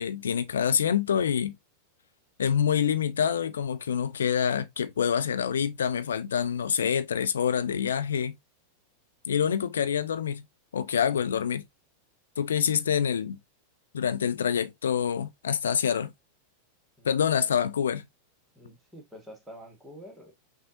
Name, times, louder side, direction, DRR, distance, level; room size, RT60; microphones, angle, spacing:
voice 1, 0.0-1.5 2.4-8.4 9.3-10.4 10.7-11.6 12.4-13.4 13.9-16.1 17.1-18.1, left 8 dB, 65° left, 0.4 m, -26 dB
voice 2, 17.0-17.5 18.5-20.3, equal, ahead, 1.6 m, -48 dB
6.1 x 2.7 x 2.5 m
figure-of-eight pair, 90°, 0 cm